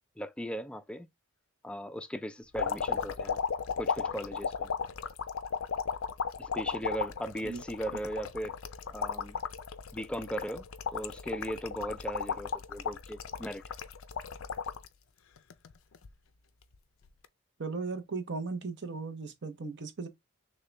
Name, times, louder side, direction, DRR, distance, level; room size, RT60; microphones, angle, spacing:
voice 1, 0.2-1.1 1.6-3.4 3.8-4.7 6.4-8.5 8.9-9.4 9.9-10.6 10.9-13.6, equal, 5° left, 0.4 m, -38 dB
sound 1, 2.5-14.9 15.4-16.1 17.1-17.3, left 6 dB, 70° left, 0.5 m, -35 dB
voice 2, 17.6-20.1, right 4 dB, 60° right, 0.8 m, -37 dB
6.4 x 2.3 x 3.3 m
head